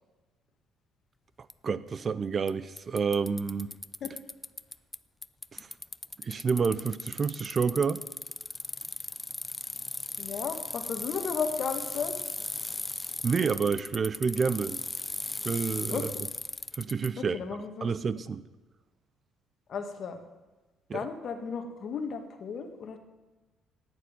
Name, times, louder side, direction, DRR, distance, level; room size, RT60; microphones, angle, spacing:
Bicycle, 1.5-1.6 2.5-2.6 2.8-5.0 5.2-17.1, left 2 dB, 15° left, 0.4 m, -37 dB
voice 1, 1.6-3.7 5.5-5.6 6.2-8.0 13.2-14.8 15.4-16.1 16.8-17.4 17.8-18.4 20.9-21.1, right 5 dB, 35° right, 16 dB, 0.6 m, -29 dB
voice 2, 10.2-12.2 15.9-16.0 17.2-17.9 19.7-20.2 20.9-23.0, left 6 dB, 45° left, 5 dB, 1.8 m, -34 dB
11.0 x 9.5 x 9.5 m, 1.2 s
cardioid pair, 120°, 0 cm